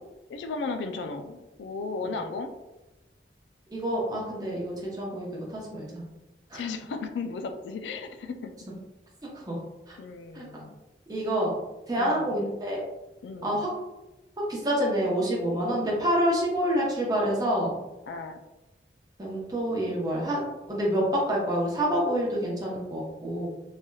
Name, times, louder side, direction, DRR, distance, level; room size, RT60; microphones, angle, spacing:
voice 1, 0.3-2.5 6.5-8.5 10.0-10.7 12.0-12.3 13.2-13.6 18.1-18.4, left 4 dB, 85° left, 7 dB, 0.3 m, -35 dB
voice 2, 3.7-6.0 6.5-6.6 9.3-9.6 9.9-10.0 10.3-10.5 11.1-11.6 11.9-12.8 13.4-13.7 14.4-17.8 19.2-23.5, equal, 20° right, -4 dB, 0.7 m, -27 dB
3.2 x 2.8 x 2.2 m, 1.0 s
head